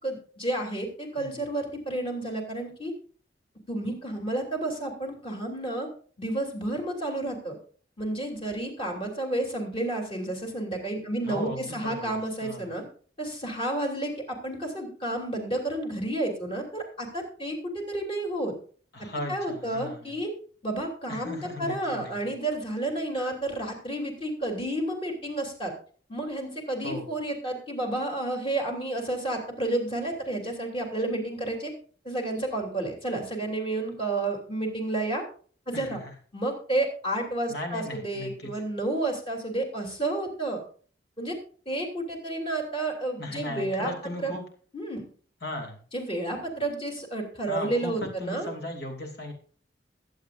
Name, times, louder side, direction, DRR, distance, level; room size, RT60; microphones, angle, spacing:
voice 1, 0.0-2.9 3.7-5.9 6.2-7.5 8.0-12.8 13.2-18.5 19.3-20.3 20.6-25.7 26.1-31.7 32.0-35.2 35.7-36.0 36.3-40.6 41.2-41.4 41.6-43.9 44.2-44.3 44.7-45.0 45.9-48.5, right 2 dB, 30° left, 1 dB, 3.2 m, -31 dB
voice 2, 11.2-12.7 18.9-20.1 21.1-22.1 26.8-27.1 35.7-36.0 37.5-38.5 43.2-44.4 45.4-45.8 47.5-49.3, left 1 dB, 65° left, 3 dB, 2.9 m, -36 dB
22.0 x 8.1 x 2.6 m, 0.43 s
head